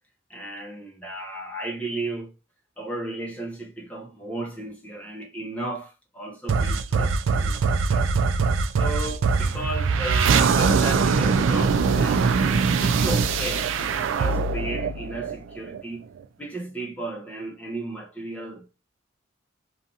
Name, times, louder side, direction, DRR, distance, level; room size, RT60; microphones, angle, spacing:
voice 1, 0.3-2.3 2.8-8.5 8.7-16.0 16.4-18.7, right 2 dB, 5° left, 0.7 m, -34 dB
sound 1, 6.5-15.8, right 5 dB, 75° right, 0.3 m, -22 dB
2.6 x 2.4 x 2.6 m
head